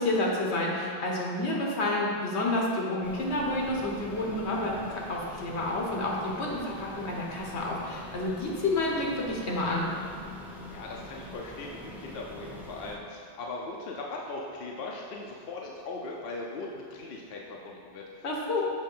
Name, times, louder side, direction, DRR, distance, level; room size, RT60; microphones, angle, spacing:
voice 1, 0.0-9.9 18.2-18.6, left 2 dB, 80° left, -2 dB, 1.3 m, -29 dB
sound 1, 3.0-13.0, left 1 dB, ahead, 0.6 m, -44 dB
voice 2, 10.7-18.2 18.5-18.6, left 3 dB, 65° left, -2 dB, 0.8 m, -39 dB
6.8 x 3.2 x 5.4 m, 2.3 s
omnidirectional pair, 1.1 m